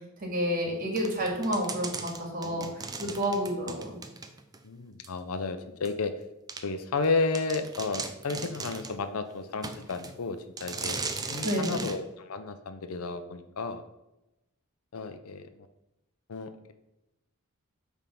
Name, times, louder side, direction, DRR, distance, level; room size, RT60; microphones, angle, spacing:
voice 1, 0.2-2.7 3.0-4.0 11.4-11.9, equal, 40° right, 0 dB, 2.2 m, -30 dB
sound 1, 1.0-4.6 5.0-5.1 5.8-5.9 6.5-6.6 7.0-7.1 7.3-9.0 9.6-10.1 10.6-12.0, right 4 dB, 15° right, 0.5 m, -37 dB
voice 2, 4.6-6.1 6.6-11.0 11.3-13.8 14.9-15.5 16.3-16.7, left 3 dB, 75° left, 9 dB, 0.6 m, -32 dB
9.1 x 3.5 x 5.9 m, 0.94 s
head